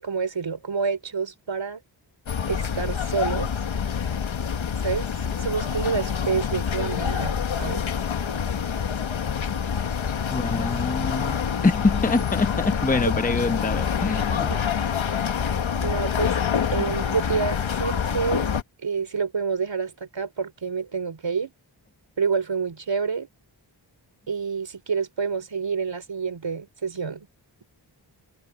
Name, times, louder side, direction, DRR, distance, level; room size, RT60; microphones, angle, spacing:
voice 1, 0.0-1.8 2.5-3.5 4.8-5.1 5.4-7.8 14.5-14.6 15.8-16.3 16.7-18.5 18.8-21.5 22.2-23.3 24.3-27.3, right 5 dB, 70° right, 4.5 m, -28 dB
sound 1, 2.3-18.6, left 7 dB, 85° left, 1.3 m, -26 dB
voice 2, 10.3-11.4 11.6-14.5, left 3 dB, 20° left, 0.9 m, -25 dB
wide cardioid pair, 65°, 46 cm